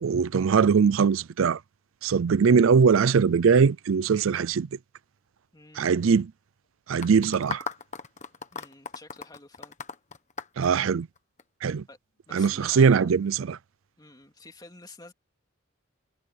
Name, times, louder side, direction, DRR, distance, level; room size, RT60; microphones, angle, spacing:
voice 1, 0.0-1.6 2.0-4.7 5.8-6.3 6.9-7.6 10.6-11.1 11.6-11.8 12.3-13.6, right 6 dB, 80° right, 0.4 m, -21 dB
voice 2, 5.5-5.9 8.5-9.8 11.9-12.0 12.3-13.1 14.0-15.1, left 3 dB, 20° left, 2.7 m, -49 dB
sound 1, 7.0-11.4, left 5 dB, 35° left, 1.3 m, -37 dB
head